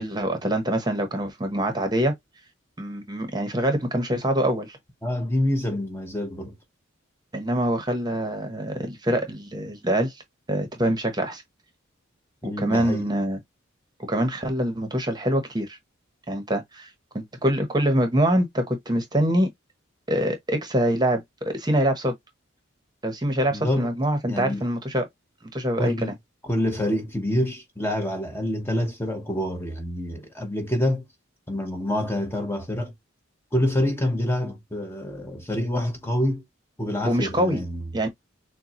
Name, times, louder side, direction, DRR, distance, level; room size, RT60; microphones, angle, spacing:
voice 1, 0.0-2.1 2.8-4.8 7.3-10.1 10.5-11.4 12.4-13.4 14.1-15.8 16.3-16.9 17.1-19.5 20.1-22.1 23.0-25.1 25.5-26.1 37.0-37.6 37.9-38.1, right 1 dB, 20° right, 1.0 m, -24 dB
voice 2, 5.0-6.5 12.4-13.1 23.5-23.9 24.3-24.6 25.8-26.1 26.4-31.1 31.5-32.9 33.5-36.4 36.8-37.9, left 1 dB, 10° left, 1.0 m, -26 dB
6.7 x 2.3 x 3.0 m
head